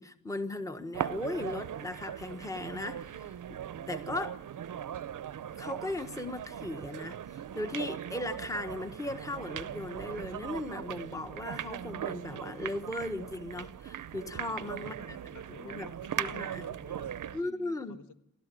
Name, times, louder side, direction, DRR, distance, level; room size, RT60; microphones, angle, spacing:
voice 1, 0.0-3.6 3.9-4.4 5.6-15.2 15.6-15.9 16.2-16.6 17.3-18.0, left 2 dB, 10° left, 8 dB, 1.3 m, -37 dB
sound 1, 0.9-17.4, right 9 dB, 70° right, 0.8 m, -39 dB
voice 2, 14.3-18.1, left 4 dB, 65° left, 7 dB, 1.7 m, -52 dB
28.0 x 13.5 x 9.2 m, 0.80 s
wide cardioid pair, 125°, 32 cm